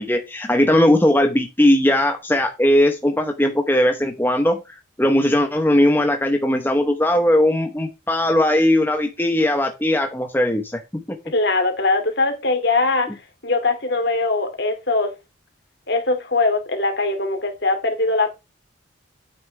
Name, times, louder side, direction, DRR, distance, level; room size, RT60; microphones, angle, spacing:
voice 1, 0.0-4.6 5.0-11.0, left 1 dB, 10° left, 0.9 m, -18 dB
voice 2, 11.3-13.2 13.4-15.1 15.9-18.3, left 3 dB, 55° left, 2.4 m, -21 dB
9.3 x 8.8 x 3.3 m
head